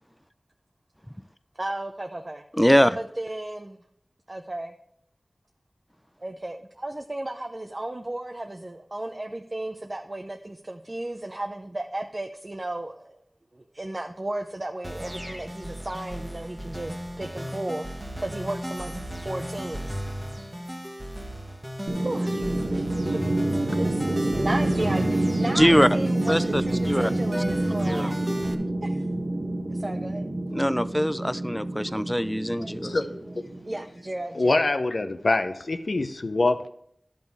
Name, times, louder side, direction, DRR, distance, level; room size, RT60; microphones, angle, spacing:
voice 1, 1.5-2.4 2.9-3.8 4.3-4.7 6.2-13.2 13.5-20.0 22.0-23.3 23.8-28.1 28.8-29.1 29.7-30.2 33.6-34.7, right 1 dB, 35° right, 4 dB, 0.6 m, -34 dB
voice 2, 2.5-3.0 25.6-25.9 26.3-27.4 27.9-28.1 30.5-33.0, equal, 5° left, 14 dB, 0.4 m, -23 dB
sound 1, 14.8-28.5, equal, 10° right, 1.3 m, -35 dB
sound 2, 21.9-34.0, right 1 dB, 60° right, 1.1 m, -27 dB
voice 3, 34.3-36.7, left 2 dB, 70° left, 8 dB, 0.7 m, -24 dB
11.5 x 5.3 x 4.7 m, 0.69 s
wide cardioid pair, 60°, 0 cm